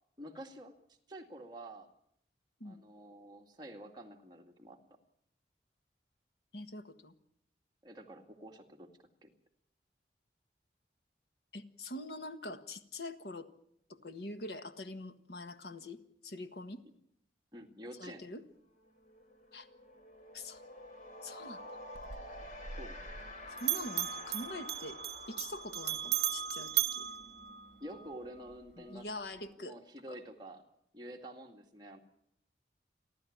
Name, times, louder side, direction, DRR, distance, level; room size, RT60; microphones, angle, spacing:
voice 1, 0.2-0.7 1.1-1.9 2.6-4.8 7.8-8.9 9.2-9.3 17.5-18.2 22.7-23.0 27.8-29.1 29.6-30.6 30.9-32.0, right 1 dB, 25° right, 2 dB, 2.2 m, -48 dB
voice 2, 6.5-7.1 11.5-13.5 13.9-16.8 18.0-18.4 19.5-19.7 20.3-20.6 21.2-21.8 23.5-25.0 25.3-27.1 28.8-29.8 30.1-30.2, left 2 dB, 70° left, 9 dB, 1.6 m, -44 dB
sound 1, 18.3-18.5 18.8-29.3, left 1 dB, 45° left, 3.1 m, -50 dB
Bell, 21.9-23.3 23.6-28.1, right 12 dB, 70° right, 1.0 m, -36 dB
30.0 x 12.0 x 8.7 m, 0.74 s
head